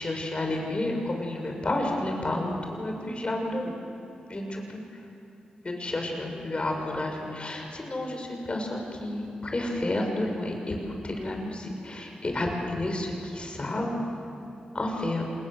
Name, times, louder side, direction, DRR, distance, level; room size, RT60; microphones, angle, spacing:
voice 1, 0.0-3.7 4.3-5.0 5.6-14.1 14.7-15.2, left 1 dB, 40° left, 2 dB, 6.8 m, -31 dB
27.5 x 21.0 x 7.8 m, 2.9 s
cardioid pair, 45°, 3 cm